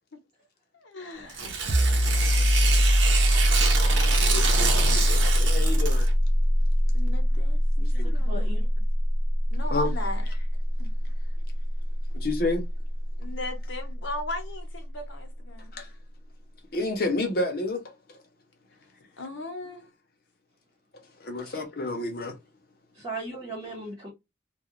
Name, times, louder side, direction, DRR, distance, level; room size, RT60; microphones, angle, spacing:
voice 1, 0.7-1.6 6.9-8.6 9.5-10.2 10.8-10.9 13.2-15.7 19.2-19.8, left 2 dB, 90° left, 0.9 m, -38 dB
Tearing, 1.3-6.1, right 5 dB, 85° right, 0.7 m, -28 dB
sound 1, 1.7-13.1, equal, 40° right, 0.5 m, -23 dB
voice 2, 4.2-6.1 9.7-9.9 12.1-12.6 15.7-15.9 16.7-17.8 18.1-18.2 21.2-22.4, left 2 dB, 55° left, 0.7 m, -30 dB
voice 3, 7.9-8.7 21.4-21.6 22.9-24.1, right 2 dB, 20° right, 0.9 m, -38 dB
2.4 x 2.3 x 2.9 m
head